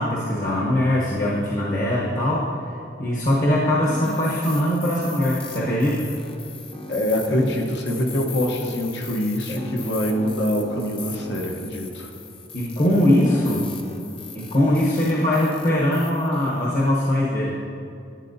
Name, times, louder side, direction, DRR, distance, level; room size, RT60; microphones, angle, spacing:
voice 1, 0.0-6.1 9.5-9.6 12.5-13.7 14.3-17.6, left 1 dB, 50° left, -5 dB, 1.0 m, -21 dB
sound 1, 3.8-16.9, left 3 dB, 30° left, 0.6 m, -38 dB
voice 2, 6.9-12.1, equal, 85° left, 1 dB, 1.1 m, -24 dB
11.5 x 8.6 x 2.7 m, 2.6 s
head